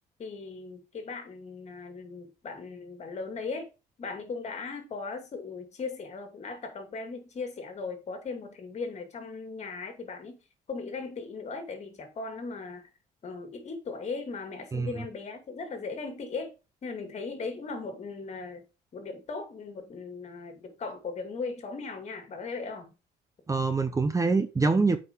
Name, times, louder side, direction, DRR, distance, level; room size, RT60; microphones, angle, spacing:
voice 1, 0.2-3.7 4.0-10.4 10.7-12.9 13.2-16.5 16.8-18.6 18.9-22.9, left 4 dB, 40° left, 2.5 m, -38 dB
voice 2, 14.7-15.0 23.5-25.0, right 4 dB, 20° right, 0.9 m, -25 dB
8.0 x 5.2 x 5.2 m
cardioid pair, 110°, 17 cm